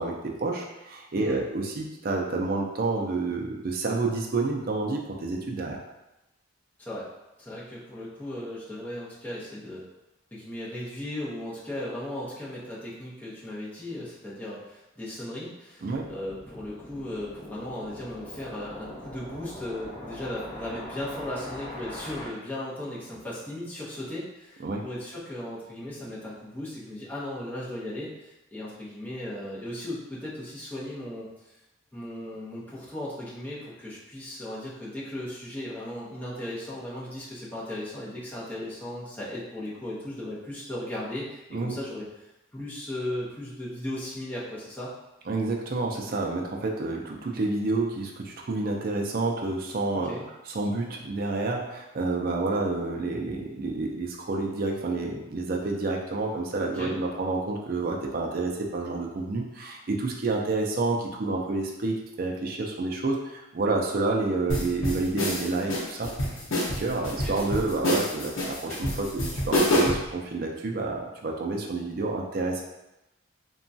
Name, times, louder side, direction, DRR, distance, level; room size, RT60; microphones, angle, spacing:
voice 1, 0.0-5.8 15.8-16.1 24.6-24.8 41.5-41.8 45.3-50.1 50.5-66.1 66.6-72.6, right 3 dB, 45° right, 1 dB, 0.4 m, -29 dB
voice 2, 7.4-9.8 10.3-31.3 31.9-42.0 42.5-44.9 50.0-50.3 56.7-56.9 67.2-67.4, left 1 dB, 10° left, -8 dB, 0.7 m, -36 dB
sound 1, 15.9-22.3, left 1 dB, 50° left, 1.0 m, -42 dB
sound 2, 64.5-70.1, left 1 dB, 85° left, 0.7 m, -27 dB
2.9 x 2.3 x 2.6 m, 0.95 s
head